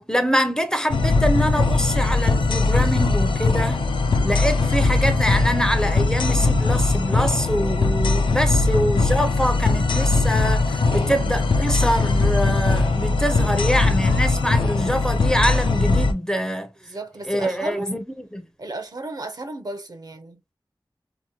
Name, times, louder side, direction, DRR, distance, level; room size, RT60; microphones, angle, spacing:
voice 1, 0.1-3.8 4.2-16.7 17.3-18.0 18.3-18.5, equal, 10° left, 0.5 m, -24 dB
sound 1, 0.9-16.1, left 3 dB, 80° left, 0.4 m, -20 dB
voice 2, 10.9-11.3 16.8-18.0 18.6-20.5, right 2 dB, 50° right, 0.5 m, -34 dB
2.8 x 2.0 x 2.8 m
wide cardioid pair, 50°, 8 cm